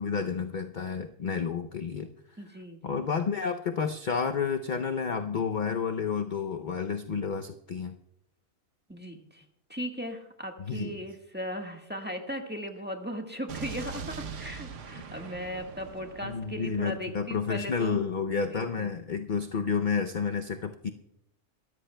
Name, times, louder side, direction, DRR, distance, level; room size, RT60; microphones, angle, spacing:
voice 1, 0.0-2.1 2.8-8.0 10.6-11.0 16.2-20.9, left 6 dB, 50° left, 6 dB, 0.6 m, -30 dB
voice 2, 2.4-3.0 8.9-9.4 9.7-18.0 18.5-18.9, equal, 10° right, 2 dB, 1.4 m, -37 dB
Explosion, 13.5-17.5, right 6 dB, 65° right, 1.2 m, -42 dB
23.5 x 13.5 x 2.2 m, 0.80 s
omnidirectional pair, 1.4 m